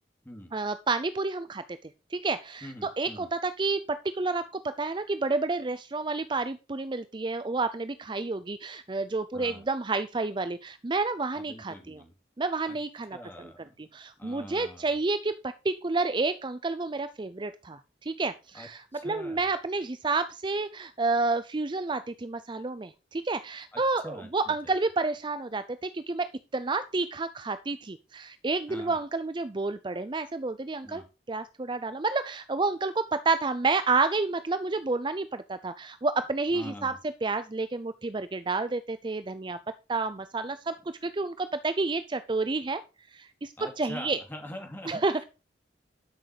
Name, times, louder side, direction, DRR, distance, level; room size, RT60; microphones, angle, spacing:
voice 1, 0.5-12.0 12.4-13.5 13.9-36.9 37.2-39.6 39.9-40.7 41.0-42.8 43.1-44.2 44.9-45.2, right 3 dB, 25° right, 12 dB, 0.5 m, -30 dB
voice 2, 2.6-3.3 9.3-9.7 11.3-12.1 12.7-12.8 13.1-13.6 14.2-15.0 18.5-18.7 18.9-19.5 23.7-24.7 28.7-29.0 30.8-31.1 36.5-37.0 43.6-45.0, left 1 dB, 10° left, 3 dB, 2.6 m, -44 dB
12.0 x 6.4 x 4.9 m, 0.30 s
head